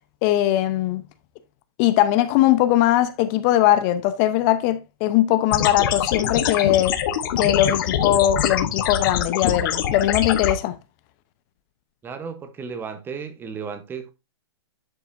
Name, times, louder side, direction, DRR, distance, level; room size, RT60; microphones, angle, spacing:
voice 1, 0.2-1.0 1.8-6.9 7.4-10.7, left 13 dB, 35° left, 0.8 m, -20 dB
sound 1, 5.5-10.5, left 9 dB, 50° left, 1.2 m, -24 dB
voice 2, 12.0-14.1, right 6 dB, 15° right, 1.0 m, -34 dB
11.0 x 5.6 x 2.6 m
hypercardioid pair, 130°, 14 cm